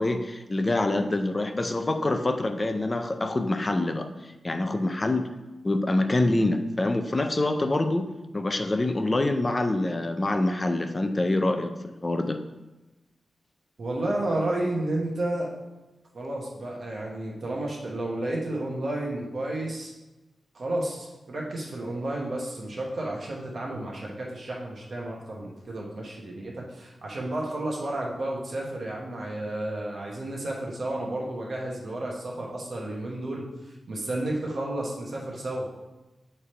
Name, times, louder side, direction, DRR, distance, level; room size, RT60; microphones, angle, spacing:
voice 1, 0.0-5.3 5.6-12.4, left 2 dB, 25° left, 7 dB, 0.4 m, -26 dB
voice 2, 13.8-15.5 16.1-19.9 20.5-35.7, right 1 dB, 50° right, -2 dB, 1.2 m, -32 dB
7.0 x 3.3 x 4.3 m, 1.1 s
wide cardioid pair, 150°, 0 cm